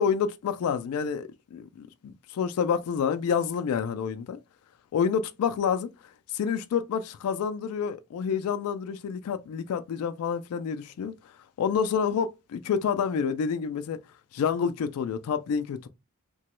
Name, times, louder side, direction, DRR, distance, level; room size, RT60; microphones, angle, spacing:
voice 1, 0.0-4.4 4.9-5.9 6.3-11.1 11.6-14.0 14.3-15.9, left 7 dB, 85° left, 0.3 m, -28 dB
2.9 x 2.2 x 2.9 m
head